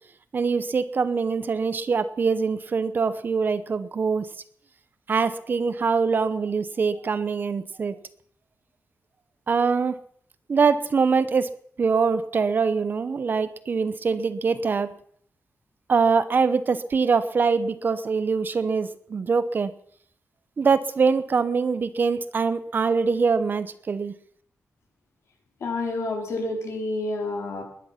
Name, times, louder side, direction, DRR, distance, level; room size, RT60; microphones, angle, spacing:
voice 1, 0.3-4.3 5.1-8.0 9.5-10.0 10.5-11.5 11.8-14.9 15.9-19.7 20.6-24.2, right 5 dB, 40° right, 13 dB, 0.8 m, -23 dB
voice 2, 25.6-27.6, left 2 dB, 70° left, 1 dB, 4.4 m, -29 dB
21.0 x 10.5 x 5.8 m, 0.63 s
wide cardioid pair, 170°, 5 cm